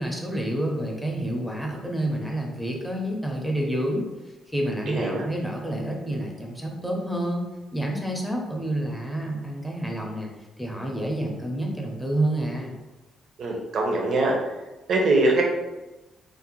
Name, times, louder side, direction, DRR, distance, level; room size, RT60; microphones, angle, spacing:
voice 1, 0.0-4.0 4.5-10.3 10.6-12.8, right 1 dB, 5° left, 0 dB, 0.5 m, -28 dB
voice 2, 4.9-5.2 13.4-14.4 14.9-15.4, right 2 dB, 60° right, 0 dB, 0.6 m, -22 dB
2.5 x 2.1 x 2.9 m, 1.1 s
cardioid pair, 90°, 0 cm